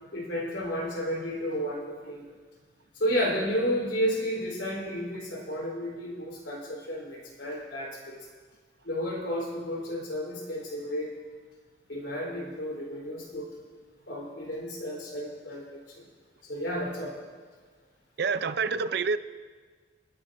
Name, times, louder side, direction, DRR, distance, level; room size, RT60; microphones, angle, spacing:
voice 1, 0.1-2.3 2.9-8.3 8.8-11.1 11.9-13.5 14.1-16.0 16.4-17.1, equal, 80° left, 3.6 m, -32 dB
voice 2, 18.2-19.2, right 5 dB, 60° right, 0.4 m, -27 dB
28.0 x 9.9 x 2.6 m
head